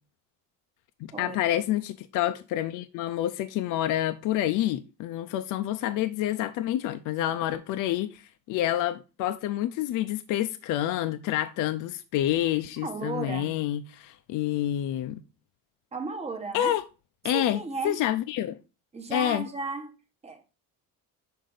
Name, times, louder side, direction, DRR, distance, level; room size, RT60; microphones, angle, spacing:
voice 1, 1.0-15.2 16.5-16.8 17.2-17.6 17.8-18.6 19.1-19.5, left 12 dB, 65° left, 0.6 m, -28 dB
voice 2, 12.8-13.6 15.9-16.8 17.3-18.0 18.9-20.5, right 3 dB, 20° right, 1.0 m, -35 dB
6.6 x 4.5 x 3.9 m
cardioid pair, 150°, 34 cm